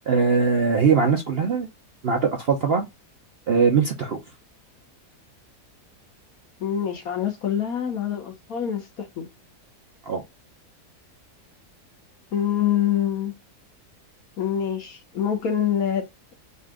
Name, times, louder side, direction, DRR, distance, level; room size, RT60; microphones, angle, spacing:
voice 1, 0.1-1.7 2.0-2.8 3.5-4.2 10.1-10.2, right 5 dB, 55° right, 0.7 m, -21 dB
voice 2, 6.6-9.3 12.3-13.3 14.4-16.3, left 9 dB, 60° left, 1.4 m, -25 dB
4.0 x 2.5 x 3.6 m
omnidirectional pair, 1.7 m